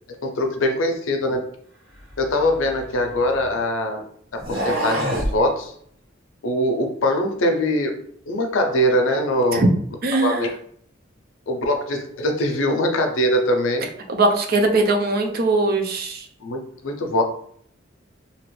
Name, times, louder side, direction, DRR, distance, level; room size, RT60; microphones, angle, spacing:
voice 1, 0.2-1.4 2.2-4.1 4.3-5.7 6.4-8.0 8.3-9.6 10.2-10.5 11.5-13.9 16.4-17.2, left 1 dB, 75° left, 4 dB, 0.5 m, -22 dB
sound 1, 2.1-3.6 4.3-5.4, equal, 85° right, 1.4 m, -27 dB
voice 2, 10.0-10.5 14.1-16.3, right 2 dB, 50° right, 3 dB, 0.5 m, -20 dB
2.8 x 2.5 x 3.1 m, 0.62 s
head